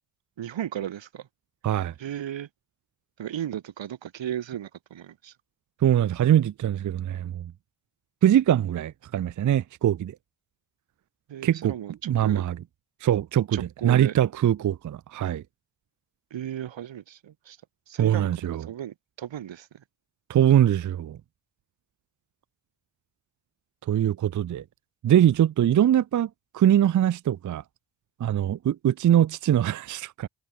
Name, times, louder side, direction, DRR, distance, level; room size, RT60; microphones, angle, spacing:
voice 1, 0.4-1.3 2.0-2.5 3.2-5.3 11.3-12.5 13.5-14.1 16.3-17.6 17.9-18.3 18.6-19.8, right 10 dB, 80° right, 1.5 m, -35 dB
voice 2, 5.8-7.5 8.2-10.1 11.4-11.7 12.1-12.6 13.0-15.4 18.0-18.6 20.3-21.2 23.9-24.6 25.0-27.6 28.2-30.3, right 10 dB, 45° right, 0.5 m, -22 dB
supercardioid pair, 40°, 44 cm